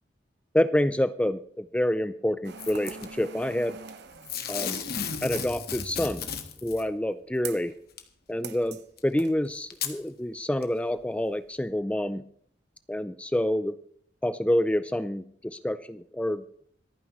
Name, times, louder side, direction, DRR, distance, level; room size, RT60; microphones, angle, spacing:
voice 1, 0.5-3.8 4.5-4.8 5.2-6.3 6.6-7.7 8.3-12.2 12.9-13.8 14.2-16.4, left 1 dB, 5° left, 12 dB, 0.4 m, -27 dB
sound 1, 2.4-5.7 7.4-7.7 8.4-8.8 9.2-9.3, right 6 dB, 65° right, 1.2 m, -43 dB
Packing tape duct tape / Tearing, 2.6-3.1 4.3-6.8 8.0-8.1 9.0-9.1 9.7-9.9 10.6-10.7, left 7 dB, 60° left, 1.6 m, -34 dB
26.0 x 9.5 x 3.1 m, 0.63 s
head